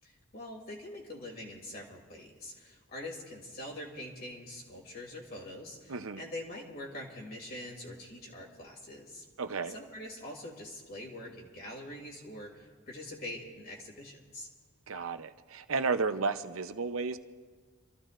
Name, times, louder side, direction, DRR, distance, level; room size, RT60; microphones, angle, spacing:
voice 1, 0.0-9.2 9.7-14.5, left 1 dB, 45° left, -1 dB, 2.7 m, -44 dB
voice 2, 5.9-6.2 9.4-9.7 14.9-17.2, right 4 dB, 70° right, 9 dB, 0.7 m, -33 dB
29.5 x 14.5 x 2.5 m, 1.5 s
head